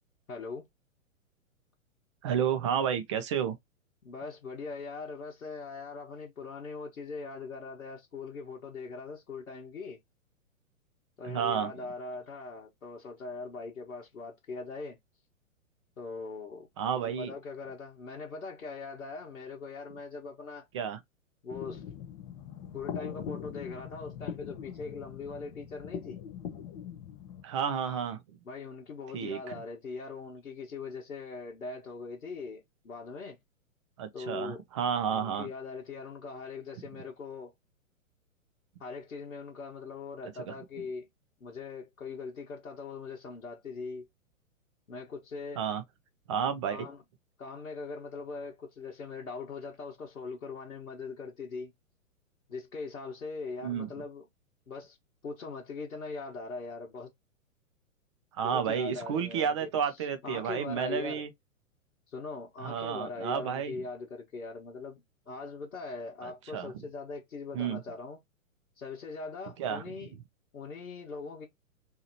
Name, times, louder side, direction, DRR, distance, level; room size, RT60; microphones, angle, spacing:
voice 1, 0.3-0.7 4.0-10.0 11.2-15.0 16.0-16.7 16.9-20.7 21.4-21.8 22.7-26.2 28.4-33.4 34.1-34.6 35.1-37.5 38.8-41.1 41.4-44.1 44.9-45.6 46.6-47.0 47.4-51.7 52.5-54.2 54.7-55.0 55.2-57.1 58.4-59.7 60.0-61.2 62.1-65.0 65.3-68.2 68.8-70.1 70.5-71.5, left 4 dB, 80° left, 1.2 m, -41 dB
voice 2, 2.2-3.5 11.2-11.7 16.8-17.3 20.7-21.0 27.4-28.2 29.1-29.5 34.0-35.5 40.5-40.8 45.6-45.8 46.3-46.9 53.6-53.9 58.3-61.3 62.6-63.7 66.2-66.7 67.5-67.8 69.6-69.8, right 8 dB, 25° right, 0.4 m, -31 dB
sound 1, 21.5-27.4, left 9 dB, 25° left, 0.6 m, -42 dB
2.9 x 2.8 x 2.6 m
figure-of-eight pair, 110°, 41 cm